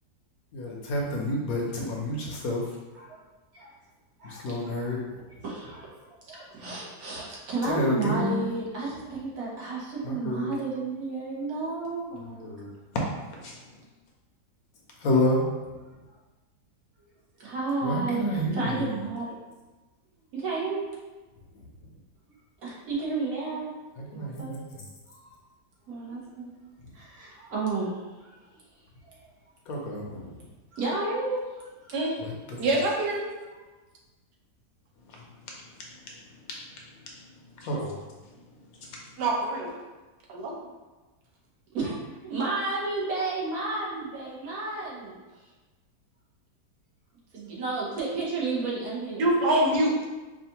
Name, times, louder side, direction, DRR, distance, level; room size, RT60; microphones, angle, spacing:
voice 1, 0.5-2.7 4.2-5.0 7.6-8.4 10.0-10.5 12.4-12.7 12.9-13.0 13.4-13.8 15.0-15.5 17.8-18.9 24.0-24.8 29.7-30.3 32.2-32.6 35.1-35.5 35.8-36.2 36.5-36.6 37.1-38.0 38.6-38.9, left 1 dB, 70° left, -1 dB, 1.0 m, -30 dB
voice 2, 4.2-4.9 5.4-5.9 6.3-12.5 17.4-19.4 20.3-20.9 22.6-23.7 24.1-24.5 25.2-25.3 25.9-26.5 26.9-28.0 28.2-28.3 29.0-29.2 30.7-31.7 41.7-45.2 47.3-49.3, right 3 dB, 60° right, -6 dB, 1.4 m, -32 dB
voice 3, 32.6-33.3 39.2-39.7 40.3-40.5 49.2-50.1, right 1 dB, 80° right, -2 dB, 1.4 m, -24 dB
4.8 x 2.5 x 2.8 m, 1.2 s
omnidirectional pair, 1.8 m